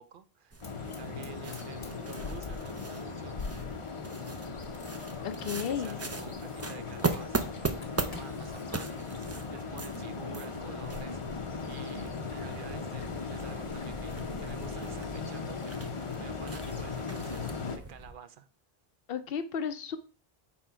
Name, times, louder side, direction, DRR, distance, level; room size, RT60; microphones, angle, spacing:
voice 1, 0.0-3.6 5.7-18.5, right 7 dB, 60° right, 0.7 m, -50 dB
sound 1, 0.5-18.1, right 3 dB, 25° right, 0.4 m, -40 dB
Fire, 0.6-18.0, left 4 dB, 90° left, 1.5 m, -51 dB
sound 2, 0.6-17.8, left 4 dB, 35° left, 0.7 m, -38 dB
voice 2, 5.2-6.0 19.1-20.0, left 7 dB, 70° left, 0.9 m, -33 dB
4.4 x 4.3 x 5.6 m
omnidirectional pair, 1.0 m